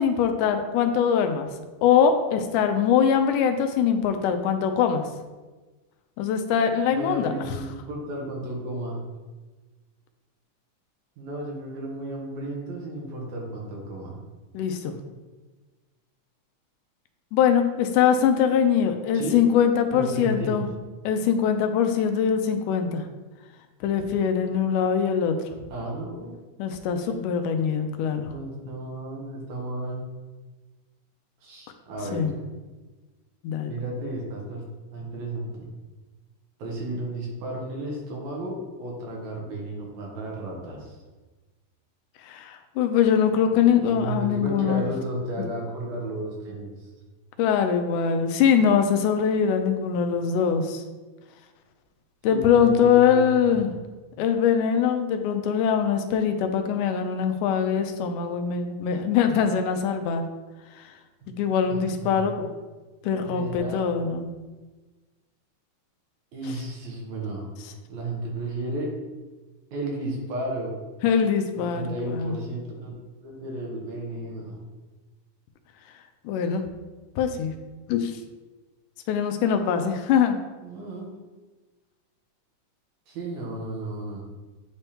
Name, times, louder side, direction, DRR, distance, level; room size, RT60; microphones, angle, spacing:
voice 1, 0.0-1.5 1.8-5.0 6.2-7.3 14.5-15.0 17.3-20.7 21.1-23.0 23.8-25.4 26.6-28.3 32.1-32.3 33.4-33.7 42.2-44.9 47.4-50.8 52.2-53.7 54.2-60.3 61.4-62.5 63.0-64.3 71.0-72.3 76.3-76.6 77.2-77.5 77.9-78.2 79.1-80.4, left 7 dB, 90° left, 6 dB, 2.1 m, -22 dB
voice 2, 6.9-9.0 11.2-14.2 19.1-19.4 19.9-20.5 25.7-26.3 27.0-27.2 28.3-30.0 31.4-32.4 33.7-34.6 34.9-35.7 36.6-41.0 43.9-46.9 52.2-53.7 61.2-61.4 61.7-62.2 63.3-63.8 66.3-67.5 67.9-68.9 69.7-70.7 71.6-73.0 73.2-74.6 80.6-81.1 83.1-84.2, right 1 dB, 70° right, -1 dB, 2.2 m, -33 dB
9.6 x 3.5 x 2.8 m, 1.3 s
omnidirectional pair, 3.6 m